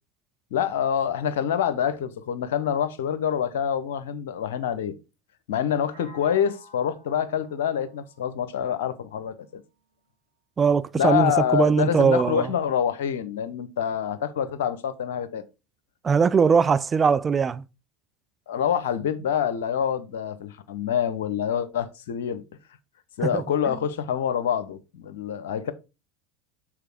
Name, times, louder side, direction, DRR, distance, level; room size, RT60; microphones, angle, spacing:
voice 1, 0.5-4.9 5.5-9.6 10.9-15.4 18.5-22.4 23.2-25.7, left 8 dB, 70° left, 0.7 m, -26 dB
sound 1, 5.9-9.8, left 2 dB, 70° right, 2.2 m, -53 dB
voice 2, 10.6-12.5 16.0-17.6 23.3-23.8, right 6 dB, 25° right, 0.4 m, -21 dB
6.7 x 3.6 x 4.7 m
hypercardioid pair, 75°, 0 cm